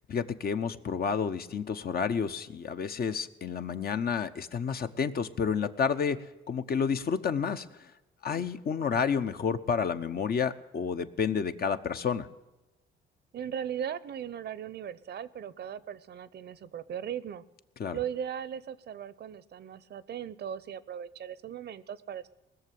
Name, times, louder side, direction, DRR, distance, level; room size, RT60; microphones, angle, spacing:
voice 1, 0.1-6.2 6.5-7.7 8.2-12.3 17.8-18.0, left 6 dB, 50° left, 9 dB, 0.9 m, -30 dB
voice 2, 13.3-17.4 17.9-22.3, right 9 dB, 55° right, 18 dB, 0.8 m, -38 dB
19.5 x 6.9 x 9.3 m, 1.1 s
cardioid pair, 90°, 20 cm